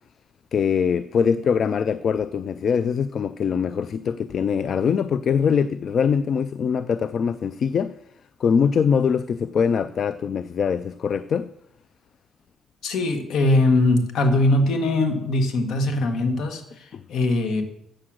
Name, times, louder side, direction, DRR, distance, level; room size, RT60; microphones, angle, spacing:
voice 1, 0.5-7.9 8.4-11.5 16.9-17.0, left 6 dB, 55° left, 0.3 m, -23 dB
voice 2, 12.8-17.6, left 2 dB, 75° left, 1.6 m, -21 dB
8.8 x 7.4 x 6.4 m
cardioid pair, 90°, 0 cm